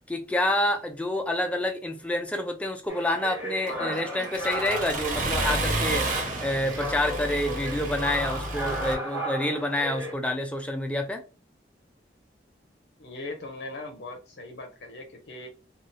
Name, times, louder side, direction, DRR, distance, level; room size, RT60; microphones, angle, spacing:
voice 1, 0.1-11.2, left 1 dB, 5° left, 0.4 m, -28 dB
sound 1, 2.9-10.1, equal, 10° right, 1.0 m, -35 dB
Accelerating revving vroom, 3.7-8.9, right 2 dB, 45° right, 0.7 m, -31 dB
voice 2, 13.0-15.5, left 2 dB, 80° left, 0.7 m, -39 dB
2.7 x 2.3 x 3.0 m
head